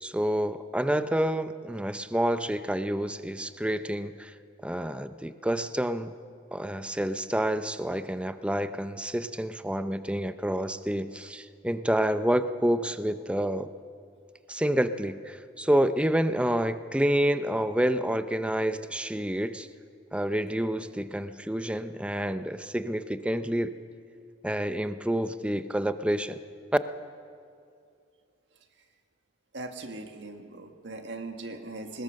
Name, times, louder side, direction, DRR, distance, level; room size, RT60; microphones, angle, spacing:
voice 1, 0.0-4.3 4.6-6.1 6.5-13.7 14.5-19.7 20.1-23.8 24.4-26.4, equal, 5° right, 11 dB, 0.6 m, -28 dB
voice 2, 29.5-32.0, right 2 dB, 70° right, 4 dB, 1.8 m, -39 dB
21.0 x 20.5 x 6.5 m, 2.3 s
head